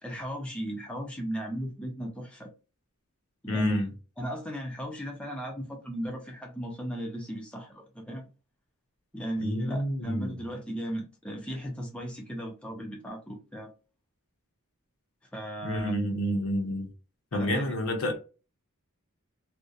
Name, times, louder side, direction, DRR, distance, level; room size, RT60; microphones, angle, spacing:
voice 1, 0.0-2.5 3.4-3.8 4.2-8.3 9.1-13.7 15.3-16.0 17.3-17.8, equal, 5° left, 0.5 m, -36 dB
voice 2, 3.5-3.9 9.4-10.4 15.6-16.9 17.3-18.2, equal, 65° left, 0.7 m, -29 dB
2.7 x 2.1 x 2.3 m
head